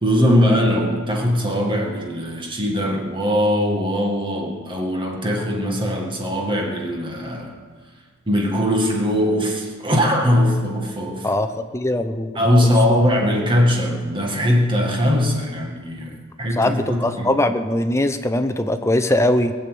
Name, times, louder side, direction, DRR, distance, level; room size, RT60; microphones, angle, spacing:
voice 1, 0.0-7.5 8.3-11.3 12.4-16.1 16.4-17.4, equal, 25° right, 0 dB, 2.0 m, -20 dB
voice 2, 11.7-13.0 16.5-19.5, left 1 dB, 15° left, 9 dB, 0.8 m, -21 dB
20.5 x 7.1 x 8.4 m, 1.5 s
head